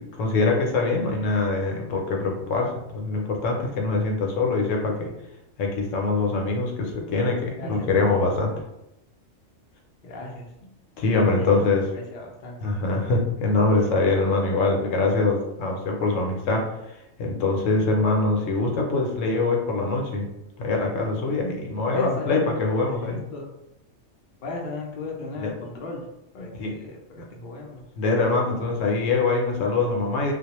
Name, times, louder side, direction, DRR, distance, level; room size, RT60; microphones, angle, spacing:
voice 1, 0.0-5.1 5.6-8.5 11.0-11.9 12.6-16.6 17.2-20.3 20.6-23.2 25.4-25.5 26.5-26.7 27.2-27.3 28.0-30.3, left 3 dB, 75° left, 1 dB, 0.9 m, -23 dB
voice 2, 7.5-8.2 10.0-10.5 11.1-12.6 21.9-22.4 22.9-23.4 24.4-26.1 26.3-27.8, left 2 dB, 60° left, -1 dB, 0.5 m, -36 dB
2.3 x 2.1 x 2.9 m, 0.87 s
omnidirectional pair, 1.3 m